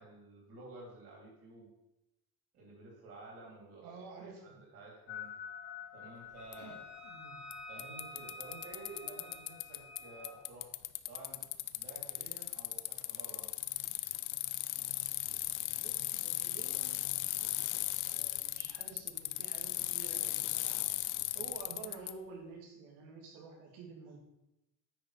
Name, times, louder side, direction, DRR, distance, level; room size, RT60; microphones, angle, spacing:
voice 1, 0.0-1.7 2.5-3.9 4.2-5.3 5.9-6.7 7.7-10.8 11.1-11.5 11.8-13.5, right 2 dB, 35° right, -1 dB, 3.3 m, -52 dB
voice 2, 3.8-4.6 6.6-6.7 7.0-7.4 15.7-17.0 18.0-20.9 21.3-24.2, right 4 dB, 85° right, 0 dB, 2.7 m, -50 dB
sound 1, 5.1-10.5, left 9 dB, 35° left, 0.7 m, -50 dB
Wind instrument woodwind instrument, 6.4-10.4, right 1 dB, ahead, 0.5 m, -51 dB
Bicycle, 6.5-6.6 7.5-7.6 7.8-10.0 10.2-22.1, left 18 dB, 75° left, 0.6 m, -37 dB
9.5 x 5.6 x 5.0 m, 0.91 s
cardioid pair, 180°, 38 cm